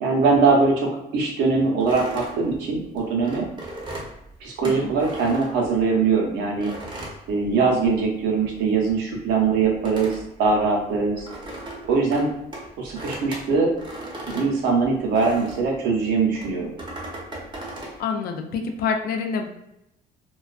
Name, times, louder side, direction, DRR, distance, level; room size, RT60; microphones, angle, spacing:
voice 1, 0.0-3.5 4.4-6.7 7.3-11.3 11.8-12.3 12.8-13.7 14.2-16.7, right 4 dB, 85° right, -1 dB, 0.7 m, -22 dB
sound 1, 1.8-6.1 6.6-8.1 8.3-15.7 16.3-18.0, right 1 dB, 25° right, 0.7 m, -37 dB
voice 2, 4.6-4.9 18.0-19.5, left 5 dB, 65° left, 4 dB, 0.4 m, -27 dB
2.3 x 2.3 x 2.4 m, 0.83 s
cardioid pair, 110°, 17 cm